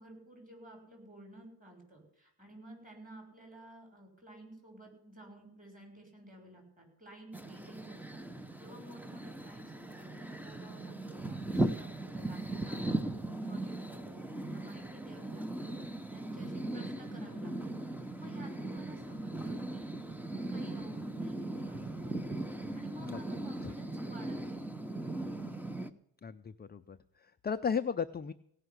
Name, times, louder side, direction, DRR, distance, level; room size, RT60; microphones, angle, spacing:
voice 1, 0.0-22.3 22.7-24.8, right 1 dB, 20° right, 2 dB, 6.2 m, -53 dB
sound 1, 7.3-25.9, right 2 dB, 5° right, 0.9 m, -38 dB
voice 2, 26.2-28.3, left 6 dB, 25° left, 9 dB, 0.5 m, -35 dB
17.0 x 5.8 x 9.6 m, 0.73 s
cardioid pair, 110°, 42 cm